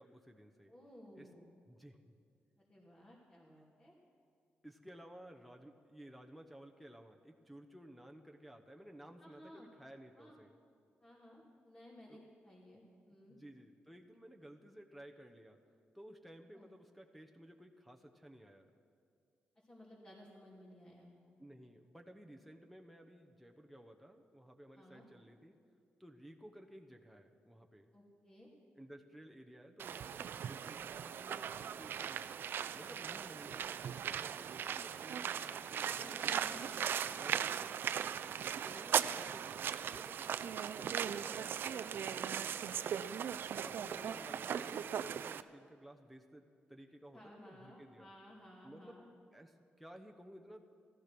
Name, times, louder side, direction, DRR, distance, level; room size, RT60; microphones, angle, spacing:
voice 1, 0.0-0.7 1.1-1.3 1.7-2.1 4.6-10.6 12.1-12.2 13.3-15.6 15.9-18.7 21.4-25.5 26.0-27.9 28.7-32.4 32.7-37.7 38.6-43.1 43.5-48.1 48.6-49.0 49.3-50.6, right 1 dB, ahead, 5 dB, 1.0 m, -56 dB
voice 2, 0.7-1.5 2.6-3.9 9.2-9.7 10.2-10.4 11.0-13.4 16.5-16.7 19.6-21.4 24.7-25.1 27.9-28.5 35.9-36.8 37.1-37.8 38.6-39.1 43.7-44.2 47.1-49.1, left 1 dB, 25° left, -6 dB, 2.8 m, -57 dB
sound 1, 29.8-45.4, right 8 dB, 70° right, 0.4 m, -38 dB
14.5 x 13.5 x 6.1 m, 2.4 s
cardioid pair, 110°, 4 cm